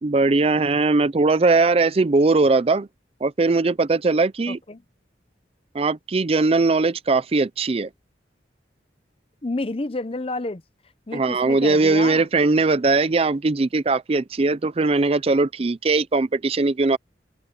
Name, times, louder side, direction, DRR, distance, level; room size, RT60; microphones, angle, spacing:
voice 1, 0.0-2.9 3.2-4.6 5.7-7.9 11.1-17.0, right 3 dB, 35° right, 0.4 m, -20 dB
voice 2, 4.5-4.8 9.4-10.6 11.1-12.3, left 2 dB, 30° left, 0.7 m, -30 dB
head